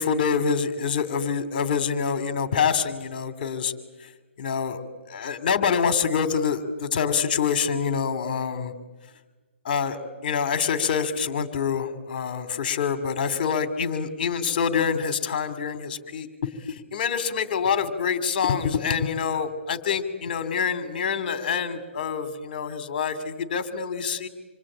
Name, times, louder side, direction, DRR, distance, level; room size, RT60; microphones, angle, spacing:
voice 1, 0.0-3.7 4.4-4.8 5.1-8.7 9.6-16.5 16.9-24.3, left 6 dB, 40° left, 11 dB, 2.8 m, -26 dB
27.0 x 24.0 x 8.8 m, 1.2 s
hypercardioid pair, 170°, 7 cm